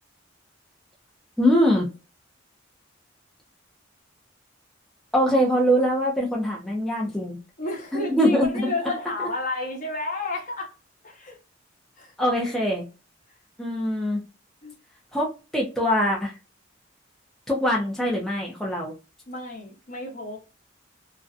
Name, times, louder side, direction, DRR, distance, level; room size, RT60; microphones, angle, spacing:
voice 1, 1.4-1.9 5.1-7.4 7.9-8.7 9.2-9.3 12.2-12.9 13.6-14.2 15.1-16.3 17.5-18.9, equal, ahead, 0.5 m, -23 dB
voice 2, 7.6-10.7 11.0-11.4 12.0-12.1 14.6-14.7 19.3-20.4, left 2 dB, 40° left, 0.9 m, -31 dB
2.5 x 2.2 x 2.4 m
head